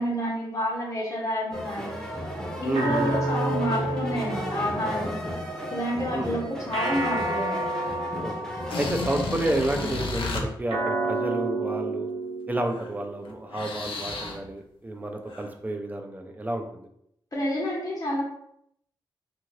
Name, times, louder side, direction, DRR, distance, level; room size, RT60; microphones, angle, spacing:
voice 1, 0.0-2.0 2.6-5.2 5.7-7.6 17.3-18.2, equal, 40° left, -4 dB, 0.8 m, -29 dB
sound 1, 1.5-10.0, equal, 5° left, 0.8 m, -35 dB
voice 2, 2.6-3.1 6.1-6.3 8.2-8.3 8.8-12.1 12.5-16.9, right 1 dB, 20° right, 4 dB, 0.5 m, -30 dB
sound 2, 2.7-5.3 6.7-9.3 10.7-13.3, right 2 dB, 85° right, 0.8 m, -30 dB
sound 3, 8.7-10.4 12.7-12.9 13.3-14.5 15.3-15.5, left 3 dB, 80° left, 0.5 m, -33 dB
2.6 x 2.6 x 3.1 m, 0.72 s
cardioid pair, 65°, 9 cm